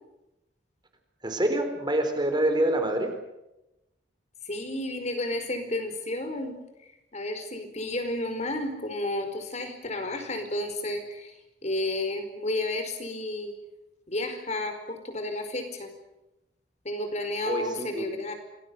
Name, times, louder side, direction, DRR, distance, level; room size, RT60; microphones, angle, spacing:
voice 1, 1.2-3.2 17.4-18.1, right 1 dB, 25° right, 6 dB, 4.1 m, -26 dB
voice 2, 4.4-6.5 7.1-11.3 11.6-13.5 14.1-15.9 16.8-18.3, left 1 dB, 40° left, 7 dB, 4.7 m, -31 dB
28.0 x 20.0 x 8.1 m, 0.93 s
head